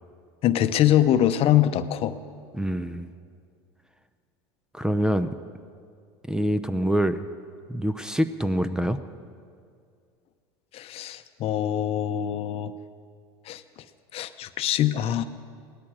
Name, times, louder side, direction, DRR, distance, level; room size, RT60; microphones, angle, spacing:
voice 1, 0.4-2.2 10.7-12.7 13.5-13.6 14.1-15.2, left 11 dB, 45° left, 11 dB, 0.8 m, -23 dB
voice 2, 2.5-3.1 4.7-5.3 6.3-7.3 7.7-9.0, equal, 5° right, 11 dB, 0.6 m, -25 dB
18.0 x 12.5 x 6.2 m, 2.2 s
hypercardioid pair, 90°, 14 cm